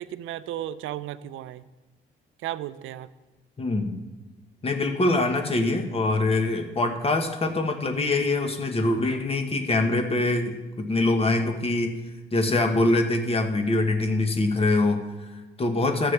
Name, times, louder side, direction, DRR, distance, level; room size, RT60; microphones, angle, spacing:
voice 1, 0.0-1.6 2.4-3.1, right 12 dB, 85° right, 15 dB, 0.5 m, -34 dB
voice 2, 3.6-3.9 4.6-12.0 12.3-16.1, left 2 dB, 30° left, 5 dB, 1.1 m, -24 dB
13.5 x 8.0 x 3.3 m, 1.2 s
cardioid pair, 90°, 20 cm